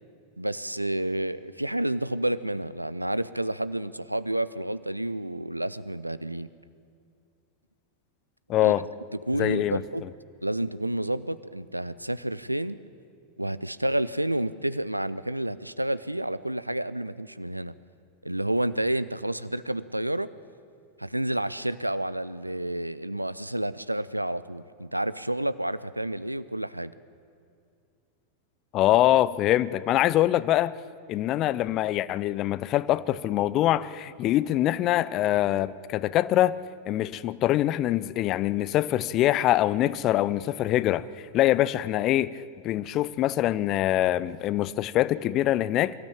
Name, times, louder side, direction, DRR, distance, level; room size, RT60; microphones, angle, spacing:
voice 1, 0.4-6.5 8.6-8.7 9.3-10.0 10.4-12.8 13.4-17.7 18.2-20.3 21.0-26.9, right 1 dB, 85° right, 0.5 m, -30 dB
voice 2, 8.5-8.8 9.4-9.8 28.7-30.7 31.1-36.6 36.9-41.1 41.3-42.3 42.6-45.9, left 14 dB, 35° left, 0.5 m, -24 dB
24.0 x 13.5 x 8.8 m
figure-of-eight pair, 90°, 0 cm